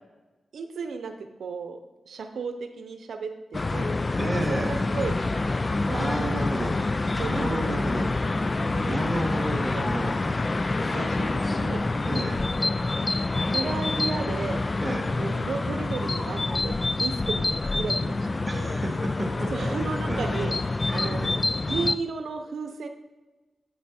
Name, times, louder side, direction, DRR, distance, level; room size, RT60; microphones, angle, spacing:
voice 1, 0.5-1.8 2.1-4.0 4.2-5.2 5.9-6.8 7.2-8.5 8.7-9.0 9.7-9.9 10.9-11.8 12.1-12.5 13.5-14.6 15.2-18.2 18.5-18.8 19.5-20.5 20.9-21.2 21.7-22.9, right 5 dB, 90° right, 7 dB, 0.7 m, -34 dB
sound 1, 3.5-22.0, left 2 dB, 35° left, 0.4 m, -27 dB
voice 2, 4.2-4.8 5.9-6.8 7.3-8.1 8.9-10.2 12.1-12.4 14.8-15.1 18.5-19.5 20.1-20.5 21.0-21.4, right 1 dB, 15° right, 1 dB, 1.9 m, -31 dB
13.0 x 5.5 x 4.3 m, 1.2 s
cardioid pair, 80°, 0 cm